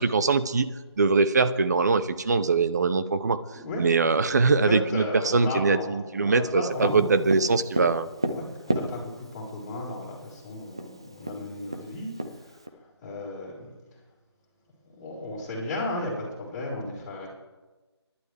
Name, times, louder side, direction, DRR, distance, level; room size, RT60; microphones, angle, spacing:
voice 1, 0.0-3.4 3.8-8.1, right 4 dB, 40° right, 12 dB, 0.8 m, -23 dB
voice 2, 3.5-3.9 4.3-7.2 8.3-13.7 14.9-17.3, left 2 dB, 15° left, -7 dB, 4.1 m, -35 dB
Tap, 6.8-9.4 10.4-10.5 10.8-10.9 11.2-12.7, right 1 dB, 10° right, 0.3 m, -30 dB
23.5 x 11.5 x 3.4 m, 1.2 s
figure-of-eight pair, 160°, 14 cm